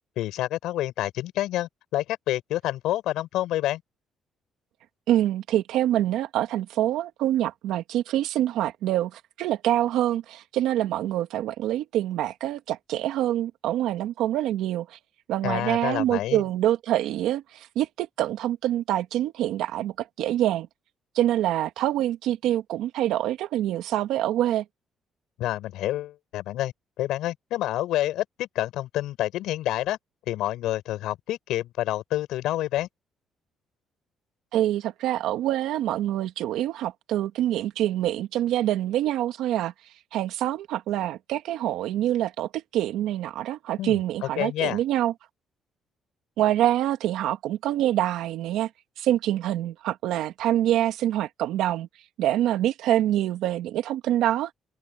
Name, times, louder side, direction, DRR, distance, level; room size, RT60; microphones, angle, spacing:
voice 1, 0.2-3.8 15.4-16.4 25.4-30.0 30.3-32.9 43.8-44.8, left 14 dB, 85° left, 7.1 m, -28 dB
voice 2, 5.1-14.9 15.3-20.7 21.2-24.6 34.5-39.7 40.1-45.1 46.4-48.7 49.0-51.9 52.2-54.5, right 12 dB, 85° right, 2.1 m, -25 dB
cardioid pair, 165°, 0 cm